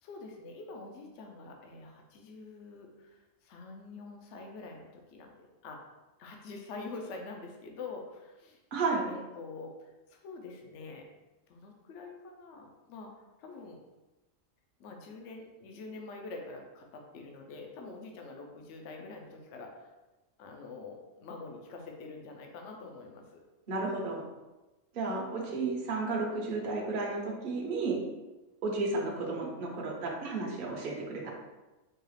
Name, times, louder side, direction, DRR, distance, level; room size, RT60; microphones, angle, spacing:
voice 1, 0.0-5.8 6.2-8.6 9.1-11.1 11.5-13.1 13.4-13.8 14.8-19.9 20.4-23.4 25.0-25.6, left 3 dB, 65° left, 2 dB, 0.9 m, -46 dB
voice 2, 8.7-9.0 23.7-24.2 24.9-28.0 28.6-31.3, right 3 dB, 50° right, -2 dB, 0.8 m, -32 dB
4.6 x 2.4 x 3.2 m, 1.1 s
omnidirectional pair, 1.4 m